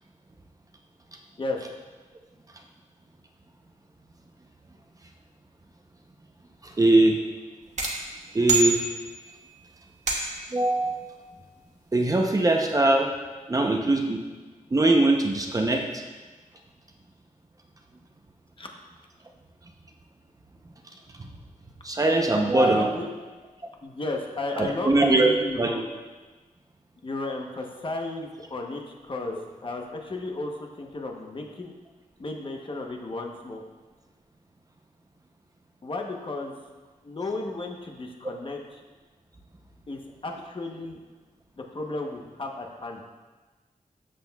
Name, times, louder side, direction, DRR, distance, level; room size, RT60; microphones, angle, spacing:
voice 1, 1.4-1.7 18.6-18.7 22.6-23.1 23.8-25.8 27.0-29.4 29.6-30.5 30.8-31.7 32.2-33.6 35.8-36.5 37.0-38.8 39.9-41.0 41.6-43.1, left 2 dB, 40° left, 1 dB, 0.9 m, -33 dB
voice 2, 6.6-7.2 8.3-8.8 10.5-11.0 11.9-13.1 13.5-14.2 14.7-16.0 21.8-22.9 24.6-25.3 25.6-25.7, right 2 dB, 25° right, 2 dB, 0.7 m, -21 dB
sound 1, 7.8-9.4 10.1-10.6, right 2 dB, 55° right, 1.4 m, -27 dB
12.5 x 7.6 x 2.3 m, 1.3 s
wide cardioid pair, 175°, 14 cm